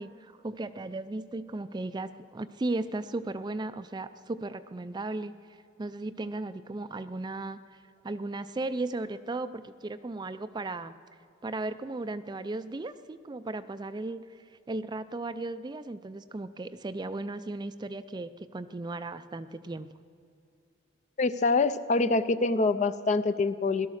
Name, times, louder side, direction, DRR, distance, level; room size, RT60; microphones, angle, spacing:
voice 1, 0.0-5.3 5.8-7.8 8.0-11.0 11.4-14.4 14.7-19.9, right 2 dB, 20° right, 12 dB, 0.4 m, -36 dB
voice 2, 21.2-23.9, left 3 dB, 40° left, 13 dB, 0.5 m, -25 dB
17.5 x 12.5 x 6.4 m, 2.4 s
head